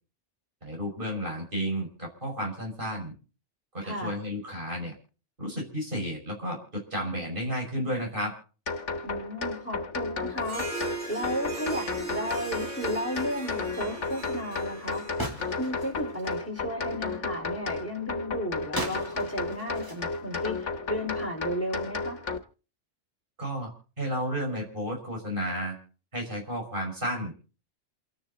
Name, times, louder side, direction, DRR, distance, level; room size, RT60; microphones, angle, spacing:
voice 1, 0.6-3.1 3.7-4.9 5.4-8.3 23.4-23.7 24.0-25.8 26.1-27.3, equal, 45° right, 1 dB, 6.0 m, -32 dB
voice 2, 3.8-4.2 9.0-10.6 11.1-15.1 15.6-22.2, equal, 10° left, 3 dB, 4.2 m, -34 dB
sound 1, 8.7-22.4, left 4 dB, 80° left, 1.6 m, -33 dB
Harp, 10.4-16.1, right 3 dB, 80° right, 5.1 m, -39 dB
sound 2, 15.2-16.5 18.8-20.8, right 1 dB, 15° right, 3.2 m, -38 dB
28.5 x 10.0 x 3.9 m, 0.38 s
omnidirectional pair, 1.2 m